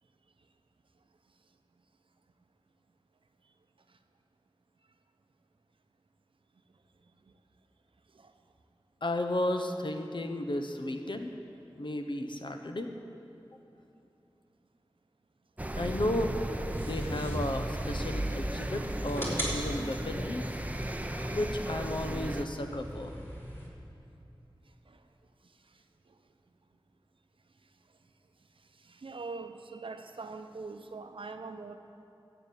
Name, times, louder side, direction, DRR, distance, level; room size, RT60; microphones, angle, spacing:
voice 1, 9.0-11.3 11.8-12.9 15.8-16.4 16.8-20.5 21.3-23.2, left 1 dB, 65° left, 5 dB, 1.0 m, -33 dB
sound 1, 15.6-22.4, right 1 dB, 15° right, 0.6 m, -35 dB
sound 2, 16.7-23.7, equal, 25° left, 3.3 m, -40 dB
voice 2, 28.8-31.8, right 4 dB, 90° right, 7 dB, 0.7 m, -42 dB
12.5 x 8.1 x 8.2 m, 2.7 s
wide cardioid pair, 65°, 9 cm